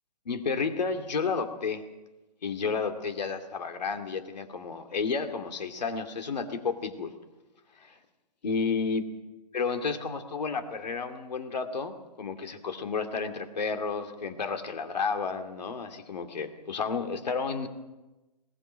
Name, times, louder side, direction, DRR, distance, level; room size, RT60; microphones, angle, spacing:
voice 1, 0.3-1.8 2.4-7.1 7.9-8.0 8.4-9.0 9.5-17.7, left 5 dB, 80° left, 6 dB, 2.5 m, -31 dB
20.5 x 20.5 x 6.3 m, 1.1 s
hypercardioid pair, 165°, 21 cm